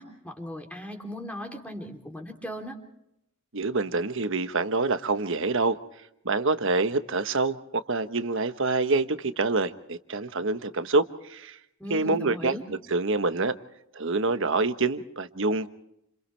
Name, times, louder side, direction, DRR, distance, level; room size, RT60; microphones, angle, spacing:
voice 1, 0.0-2.8 11.8-12.6, equal, 5° left, 3 dB, 3.3 m, -38 dB
voice 2, 3.5-5.8 6.2-11.6 11.9-13.6 13.9-15.7, right 3 dB, 65° right, 10 dB, 1.3 m, -26 dB
30.0 x 27.5 x 3.4 m, 0.79 s
head